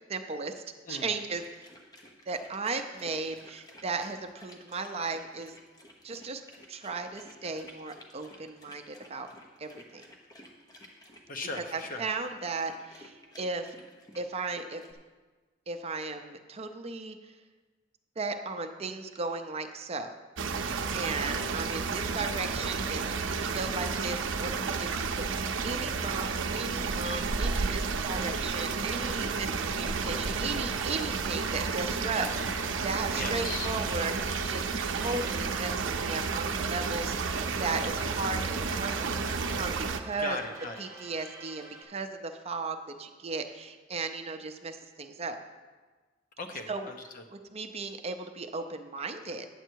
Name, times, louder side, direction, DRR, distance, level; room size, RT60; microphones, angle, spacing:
voice 1, 0.1-0.6 0.9-1.4 2.3-5.5 6.0-6.4 6.7-9.3 9.6-10.0 11.7-13.7 14.2-14.8 15.7-17.2 18.2-20.1 20.9-26.3 26.5-40.4 40.8-45.4 46.7-46.9 47.3-49.5, right 3 dB, 35° right, 6 dB, 0.5 m, -36 dB
sound 1, 1.4-14.9, left 1 dB, 20° left, 1.0 m, -54 dB
voice 2, 11.3-12.1 20.9-21.1 33.1-33.7 40.2-40.8 46.4-47.2, left 2 dB, 45° left, 4 dB, 0.9 m, -38 dB
sound 2, 20.4-40.0, right 4 dB, 85° right, 0.6 m, -31 dB
sound 3, 28.1-41.8, right 2 dB, 15° right, 1.4 m, -46 dB
9.2 x 7.7 x 4.6 m, 1.3 s
head